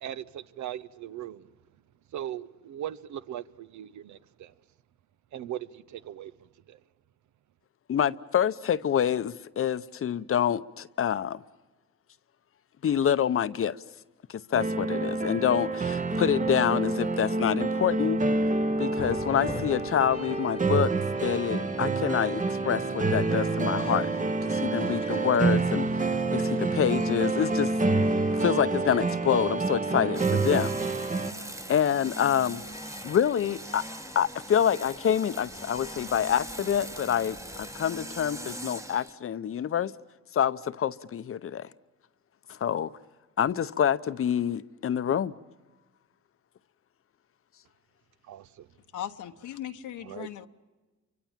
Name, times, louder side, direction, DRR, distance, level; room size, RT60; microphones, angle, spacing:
voice 1, 0.0-1.5 2.1-4.5 5.3-6.3 6.7-6.8 48.3-48.7 50.0-50.3, right 11 dB, 70° right, 0.8 m, -39 dB
voice 2, 7.9-11.4 12.8-13.8 14.3-18.2 18.8-20.9 21.2-24.1 24.4-27.7 28.3-30.7 31.7-32.6 33.0-33.8 34.1-39.9 40.3-41.7 42.5-42.9 43.4-45.3, left 9 dB, 45° left, 0.8 m, -27 dB
sound 1, 14.5-31.3, right 3 dB, 25° right, 1.0 m, -27 dB
sound 2, 19.0-38.7, left 4 dB, 20° left, 1.2 m, -47 dB
sound 3, 30.1-39.1, right 1 dB, 10° right, 1.2 m, -41 dB
voice 3, 48.9-50.5, left 11 dB, 80° left, 1.1 m, -38 dB
29.0 x 25.0 x 7.4 m
cardioid pair, 90°, 30 cm